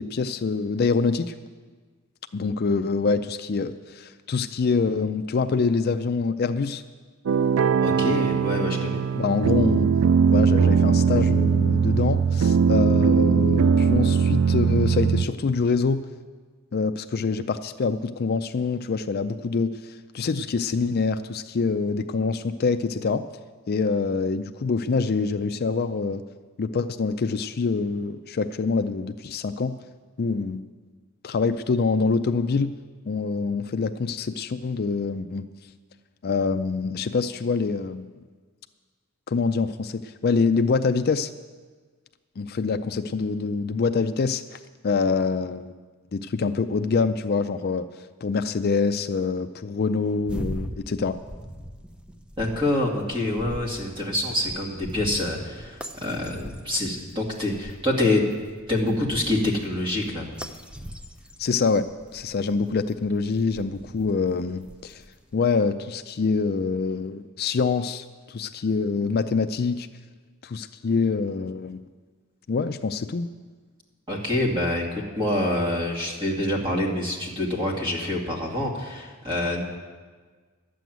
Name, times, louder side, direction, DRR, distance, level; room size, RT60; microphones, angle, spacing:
voice 1, 0.0-1.3 2.3-6.8 9.1-9.9 10.3-16.0 16.7-23.2 23.7-26.2 26.6-29.7 30.2-30.7 31.2-32.7 33.1-35.5 36.2-38.1 39.3-41.3 42.4-44.6 44.8-45.7 46.1-47.9 48.2-51.2 61.4-61.9 62.1-65.0 65.3-69.9 70.4-71.9 72.5-73.3, left 4 dB, 45° left, 9 dB, 0.4 m, -25 dB
sound 1, 7.3-15.3, right 6 dB, 75° right, 0.4 m, -20 dB
voice 2, 7.8-9.0 52.4-58.2 58.7-60.3 74.1-79.6, left 1 dB, 25° right, -1 dB, 2.3 m, -26 dB
sound 2, 50.2-65.4, equal, 5° right, 0.6 m, -41 dB
12.0 x 7.7 x 9.2 m, 1.5 s
head